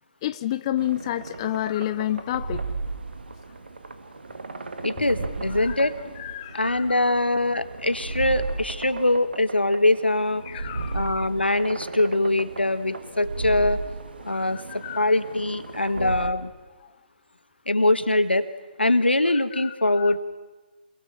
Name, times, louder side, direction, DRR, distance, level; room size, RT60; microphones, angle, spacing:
voice 1, 0.2-2.7 5.6-5.9 6.2-7.1 10.4-11.2 14.3-15.1 15.8-15.9 16.8-16.9 19.3-20.1, left 13 dB, 30° left, 12 dB, 0.8 m, -31 dB
sound 1, 0.8-16.3, right 3 dB, 70° right, 2.1 m, -35 dB
voice 2, 4.8-6.0 6.5-10.4 10.9-13.8 14.3-16.5 17.7-18.5 18.8-20.2, left 2 dB, 85° left, 11 dB, 1.6 m, -23 dB
28.0 x 22.0 x 7.2 m, 1.3 s
figure-of-eight pair, 140°, 6 cm